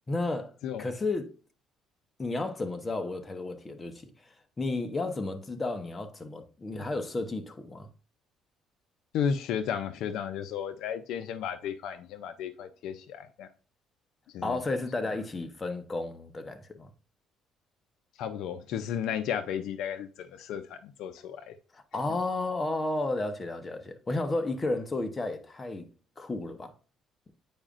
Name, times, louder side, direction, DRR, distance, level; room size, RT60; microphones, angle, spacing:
voice 1, 0.1-0.5 0.8-1.3 2.2-7.9 14.4-16.9 21.7-25.9 26.2-26.7, left 2 dB, 25° left, 1.0 m, -32 dB
voice 2, 9.1-13.5 14.3-14.6 18.2-21.6, left 8 dB, 75° left, 0.5 m, -34 dB
8.8 x 4.9 x 2.5 m
cardioid pair, 100°, 0 cm